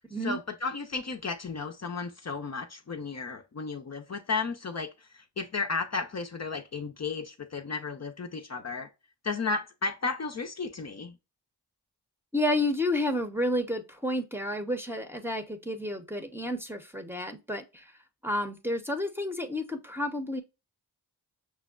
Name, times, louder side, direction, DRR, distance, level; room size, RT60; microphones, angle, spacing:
voice 1, 0.2-8.9 9.2-11.2, left 4 dB, 40° left, 0.6 m, -34 dB
voice 2, 12.3-17.8 18.2-20.4, left 1 dB, 5° right, 0.7 m, -30 dB
6.1 x 2.1 x 2.3 m
cardioid pair, 50°, 40 cm